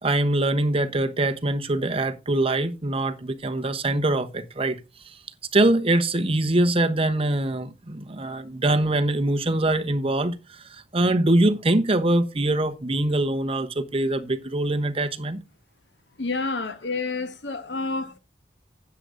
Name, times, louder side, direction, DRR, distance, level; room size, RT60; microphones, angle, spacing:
voice 1, 0.0-4.8 5.5-15.4, right 1 dB, 35° right, 1.0 m, -23 dB
voice 2, 16.2-18.2, left 3 dB, 80° left, 1.3 m, -29 dB
9.9 x 8.1 x 3.8 m
head